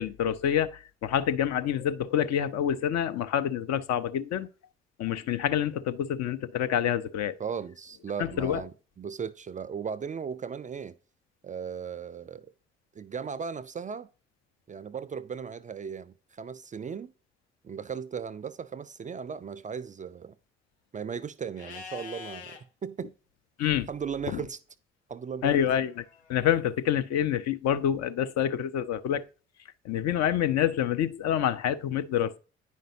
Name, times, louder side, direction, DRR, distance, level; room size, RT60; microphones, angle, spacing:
voice 1, 0.0-4.5 5.0-7.3 8.2-8.6 23.6-23.9 24.3-24.4 25.4-25.9 26.3-29.2 29.8-32.4, left 10 dB, 55° left, 0.5 m, -27 dB
voice 2, 7.4-10.9 11.4-12.5 13.0-14.1 14.7-17.1 17.6-20.4 20.9-23.1 23.6-24.6 25.1-25.7, right 6 dB, 25° right, 0.4 m, -37 dB
Livestock farm animals working animals, 21.6-22.6 25.4-26.4, left 6 dB, 85° left, 0.8 m, -45 dB
9.3 x 5.1 x 2.7 m
figure-of-eight pair, 45°, 33 cm